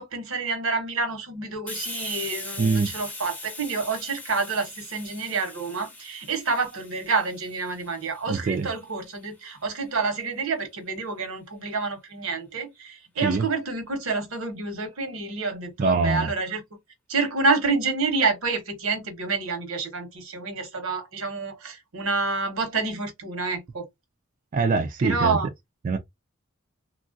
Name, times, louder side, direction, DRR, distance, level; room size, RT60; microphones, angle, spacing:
voice 1, 0.0-16.6 17.1-23.8 25.0-25.5, right 4 dB, 75° right, 1.0 m, -28 dB
Hiss, 1.7-9.1, left 2 dB, 5° left, 0.6 m, -40 dB
voice 2, 2.6-2.9 8.3-8.7 13.2-13.5 15.8-16.3 24.5-25.4 25.8-26.0, right 4 dB, 40° right, 0.3 m, -23 dB
3.0 x 2.4 x 2.5 m
head